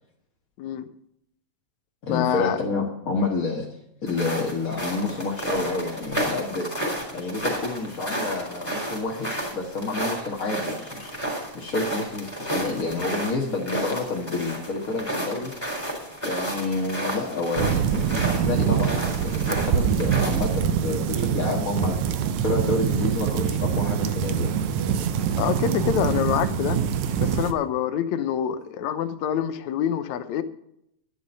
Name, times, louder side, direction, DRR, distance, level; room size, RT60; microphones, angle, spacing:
voice 1, 0.6-0.9 2.1-2.6 25.4-26.8 27.2-30.4, left 9 dB, 75° left, 12 dB, 2.2 m, -26 dB
voice 2, 2.0-3.7 4.0-15.8 16.2-24.5, left 3 dB, 35° left, -2 dB, 1.8 m, -29 dB
sound 1, 4.1-20.5, right 1 dB, 10° left, 4.0 m, -32 dB
sound 2, 17.6-27.5, right 8 dB, 75° right, 2.3 m, -24 dB
11.5 x 10.5 x 5.4 m, 0.76 s
omnidirectional pair, 3.3 m